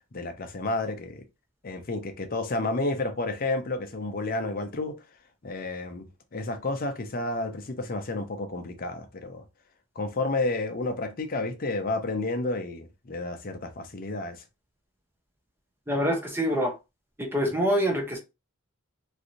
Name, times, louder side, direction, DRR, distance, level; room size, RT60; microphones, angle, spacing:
voice 1, 0.1-1.2 1.6-5.0 5.4-9.4 10.0-14.4, left 2 dB, 40° left, 0.6 m, -31 dB
voice 2, 15.9-16.7 17.2-18.2, equal, 10° right, 0.6 m, -25 dB
3.2 x 2.5 x 2.6 m
head